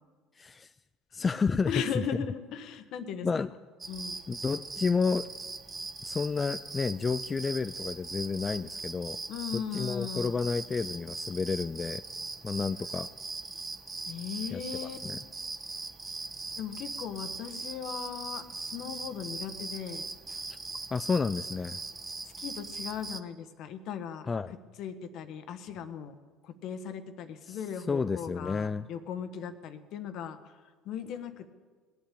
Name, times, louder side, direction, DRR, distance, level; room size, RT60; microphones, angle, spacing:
voice 1, 0.4-0.7 1.1-2.0 3.2-3.5 4.3-5.3 6.0-9.2 9.5-12.0 12.4-13.1 14.5-14.6 15.0-15.2 20.9-21.8 24.3-24.5 27.4-28.9, left 5 dB, 25° left, 11 dB, 0.4 m, -31 dB
voice 2, 1.7-3.3 3.9-4.2 9.3-10.4 14.1-15.0 16.6-20.1 22.4-24.3 24.8-26.1 26.4-30.5 30.8-31.5, left 8 dB, 60° left, 10 dB, 1.3 m, -38 dB
sound 1, 3.8-23.2, right 3 dB, 25° right, 1.0 m, -40 dB
19.0 x 8.3 x 8.5 m, 1.5 s
supercardioid pair, 85°, 0 cm